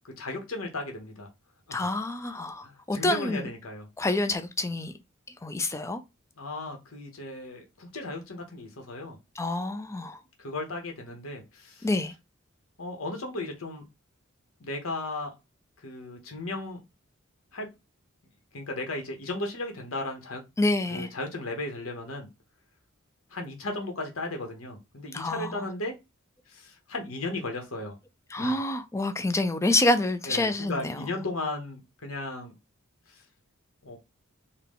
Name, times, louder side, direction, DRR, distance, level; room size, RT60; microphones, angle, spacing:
voice 1, 0.0-1.3 1.7-1.9 2.6-3.9 6.4-9.2 10.4-11.9 12.8-13.9 14.6-15.3 15.8-16.8 17.5-17.7 18.5-20.4 20.9-22.3 23.3-25.9 26.5-28.0 28.4-28.6 30.2-32.5 33.1-33.2 33.8-34.0, left 2 dB, 70° left, 1.1 m, -35 dB
voice 2, 1.7-3.5 4.0-4.9 5.4-6.0 9.4-10.2 11.8-12.1 20.6-21.1 25.1-25.5 28.3-31.0, left 2 dB, 15° left, 0.4 m, -27 dB
3.7 x 2.2 x 3.6 m
head